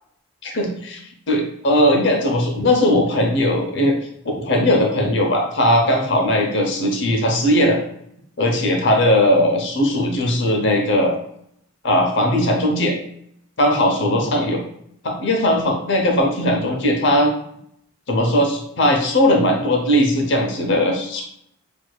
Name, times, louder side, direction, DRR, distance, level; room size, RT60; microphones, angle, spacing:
voice 1, 0.4-1.0 1.3-3.9 4.4-7.8 8.4-11.1 11.8-13.0 13.6-14.6 15.0-17.3 18.1-21.2, left 1 dB, 55° left, 2 dB, 0.8 m, -18 dB
6.2 x 2.7 x 2.3 m, 0.72 s
head